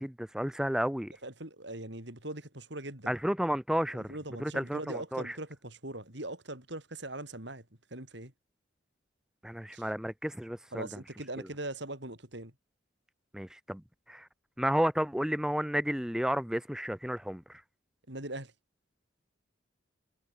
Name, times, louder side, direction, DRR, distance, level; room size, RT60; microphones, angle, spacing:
voice 1, 0.0-1.1 3.1-4.1 4.4-5.4 9.4-10.9 11.4-11.5 13.3-13.8 14.1-14.3 14.6-17.6, equal, 5° right, 0.6 m, -32 dB
voice 2, 1.2-3.1 3.9-7.7 7.9-8.3 9.7-9.9 10.7-12.5 18.1-18.5, right 1 dB, 60° right, 5.7 m, -41 dB
head